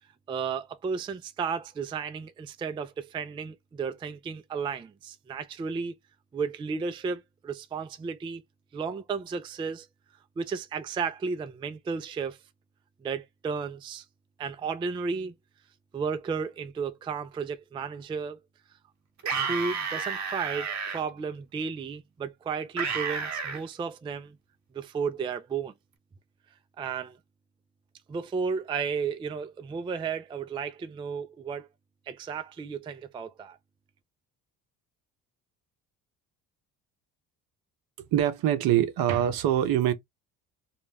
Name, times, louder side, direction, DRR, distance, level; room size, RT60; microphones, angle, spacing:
voice 1, 0.3-6.0 6.3-8.4 8.7-9.9 10.4-12.4 13.0-14.0 14.4-15.3 15.9-18.4 19.4-24.4 24.7-25.7 26.8-27.2 28.1-31.7 32.1-33.6, right 5 dB, 15° right, 0.3 m, -33 dB
sound 1, 19.2-21.0 22.8-23.6, right 6 dB, 45° right, 1.1 m, -31 dB
voice 2, 38.0-39.9, right 11 dB, 60° right, 0.7 m, -24 dB
2.4 x 2.1 x 3.2 m
hypercardioid pair, 65°, 40 cm